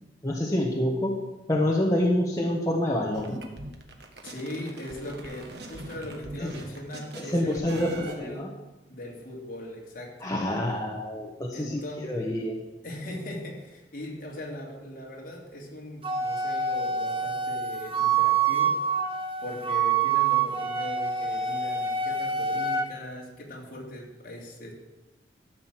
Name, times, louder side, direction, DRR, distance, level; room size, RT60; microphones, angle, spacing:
voice 1, 0.2-1.2 1.5-3.4 6.4-6.5 7.2-8.5 10.2-12.6, left 1 dB, 20° left, -2 dB, 1.2 m, -27 dB
sound 1, 3.1-8.2, right 1 dB, 60° right, 1.5 m, -42 dB
voice 2, 4.2-8.6 8.9-10.1 11.5-12.1 12.8-18.8 19.4-24.7, left 1 dB, 50° left, -2 dB, 2.9 m, -39 dB
Wind instrument woodwind instrument, 16.0-22.9, right 5 dB, 30° right, 1.1 m, -26 dB
13.5 x 6.4 x 7.5 m, 1.0 s
head